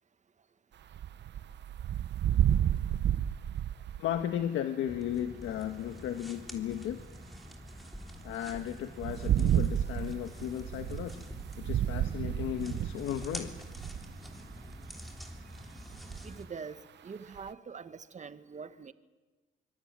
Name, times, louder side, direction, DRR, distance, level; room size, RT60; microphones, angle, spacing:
sound 1, 0.9-4.2 7.0-7.1 8.9-14.1 14.5-14.9 15.9-16.2 17.4-17.5, right 10 dB, 60° right, 1.0 m, -31 dB
voice 1, 4.0-7.0 8.2-11.3 11.6-13.7, left 10 dB, 85° left, 1.4 m, -35 dB
sound 2, 4.8-16.5, equal, ahead, 3.4 m, -47 dB
voice 2, 16.2-18.9, right 5 dB, 35° right, 1.6 m, -44 dB
25.0 x 22.5 x 9.2 m
cardioid pair, 90°, 20 cm